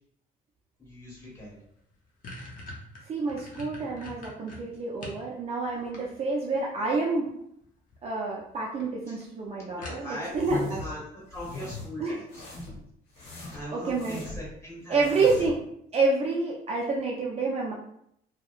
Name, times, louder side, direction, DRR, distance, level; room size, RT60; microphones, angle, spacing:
voice 1, 0.8-1.6 9.1-9.2 9.7-12.4 13.5-15.3, equal, 15° left, -6 dB, 1.4 m, -40 dB
sound 1, 1.4-1.5 1.8-5.2 5.6-6.5 7.6-8.0 8.4-8.5 8.8-8.9 9.2-9.3 9.8-10.4, left 2 dB, 50° left, 0.8 m, -43 dB
voice 2, 3.1-7.3 8.0-10.8 12.0-12.2 13.7-14.2 14.9-15.6 15.9-17.7, right 3 dB, 35° right, -3 dB, 0.4 m, -28 dB
sound 2, 10.3-10.9 11.3-11.9 12.3-12.8 13.2-14.5 14.9-15.6, left 2 dB, 75° left, 0.9 m, -39 dB
2.7 x 2.1 x 2.4 m, 0.73 s
cardioid pair, 110°, 17 cm